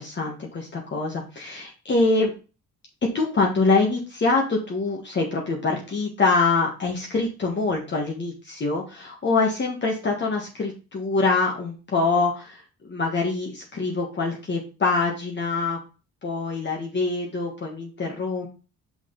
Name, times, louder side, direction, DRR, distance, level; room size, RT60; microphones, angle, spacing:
voice 1, 0.0-2.3 3.1-15.8 16.2-18.5, left 3 dB, 35° left, -1 dB, 1.6 m, -24 dB
5.9 x 4.9 x 3.9 m, 0.33 s
cardioid pair, 90°, 30 cm